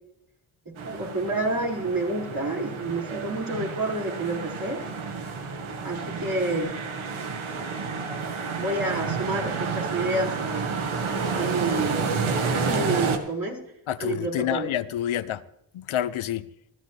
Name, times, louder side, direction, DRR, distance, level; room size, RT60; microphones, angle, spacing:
voice 1, 0.7-4.8 5.8-6.7 8.6-10.7 11.4-12.2 12.5-13.6 14.0-14.7, right 2 dB, 45° right, -1 dB, 5.9 m, -29 dB
sound 1, 0.8-13.2, right 5 dB, 85° right, 1.9 m, -30 dB
voice 2, 13.9-15.4 15.9-16.4, left 11 dB, 90° left, 14 dB, 0.8 m, -28 dB
21.5 x 13.5 x 3.4 m, 0.77 s
cardioid pair, 55°, 47 cm